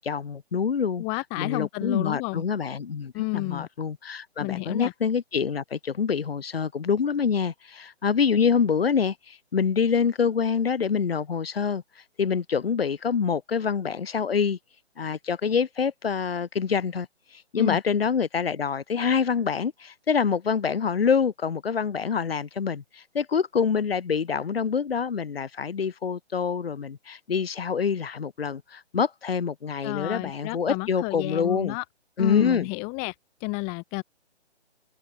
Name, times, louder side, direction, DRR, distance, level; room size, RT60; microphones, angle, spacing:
voice 1, 0.0-14.6 15.0-31.8 32.2-32.7, left 6 dB, 55° left, 4.9 m, -26 dB
voice 2, 1.0-2.4 3.1-3.7 4.4-4.9 17.6-17.8 29.8-31.8 32.2-33.1 33.4-34.0, left 36 dB, 20° left, 4.6 m, -31 dB
open air
figure-of-eight pair, 150°, 34 cm